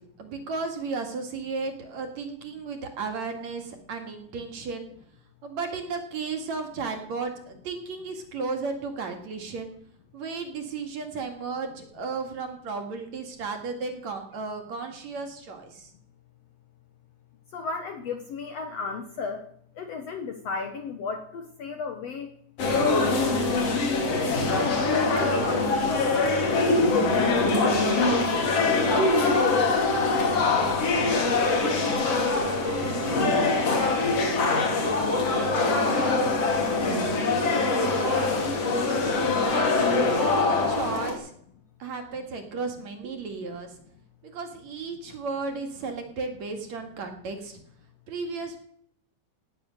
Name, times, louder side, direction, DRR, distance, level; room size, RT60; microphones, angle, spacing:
voice 1, 0.2-4.9 5.4-9.7 10.1-15.9 31.8-33.2 36.8-37.2 37.5-38.3 39.4-39.9 40.1-41.3 41.8-43.8 44.2-47.6 48.1-48.6, right 4 dB, 55° right, 5 dB, 3.0 m, -34 dB
voice 2, 17.5-19.4 19.8-22.3 22.7-23.2 24.2-26.3 26.8-29.9, left 4 dB, 65° left, 6 dB, 1.7 m, -35 dB
sound 1, 22.6-41.1, left 3 dB, 45° left, 3.4 m, -23 dB
17.5 x 9.9 x 6.6 m, 0.66 s
omnidirectional pair, 4.1 m